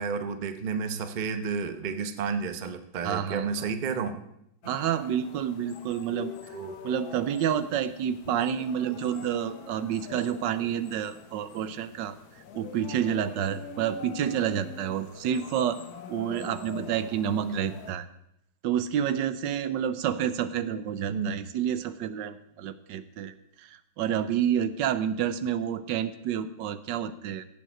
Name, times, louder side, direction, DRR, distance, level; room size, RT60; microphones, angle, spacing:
voice 1, 0.0-4.2 6.5-6.7 17.4-17.8 21.1-21.4, right 5 dB, 40° right, 9 dB, 0.6 m, -31 dB
voice 2, 3.0-3.7 4.6-6.3 6.8-12.2 12.5-15.8 16.1-18.1 18.6-23.3 24.0-27.4, right 9 dB, 85° right, 13 dB, 1.4 m, -29 dB
sound 1, 4.6-17.9, left 6 dB, 65° left, 1.4 m, -45 dB
16.5 x 7.4 x 4.4 m, 0.77 s
omnidirectional pair, 1.9 m